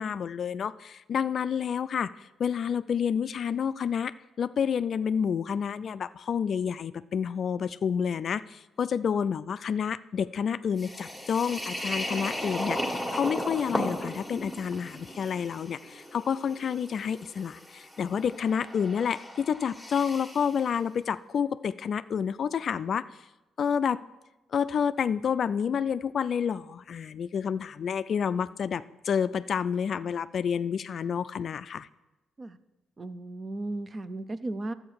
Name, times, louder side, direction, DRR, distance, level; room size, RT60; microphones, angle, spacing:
voice 1, 0.0-23.1 23.6-24.0 24.5-31.9, left 7 dB, 55° left, 14 dB, 0.3 m, -29 dB
sound 1, 10.8-20.6, equal, ahead, 1.5 m, -36 dB
voice 2, 33.0-34.7, right 2 dB, 30° right, 13 dB, 0.6 m, -35 dB
11.5 x 7.7 x 4.7 m, 1.0 s
cardioid pair, 90°, 0 cm